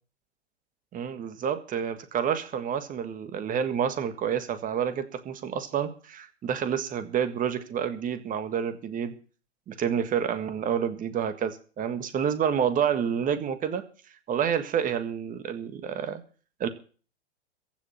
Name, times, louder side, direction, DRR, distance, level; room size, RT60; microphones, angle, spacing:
voice 1, 0.9-9.1 9.7-13.8 14.3-16.2 16.6-16.7, right 8 dB, 25° right, 10 dB, 1.7 m, -29 dB
15.0 x 6.8 x 9.3 m, 0.40 s
hypercardioid pair, 115°, 35 cm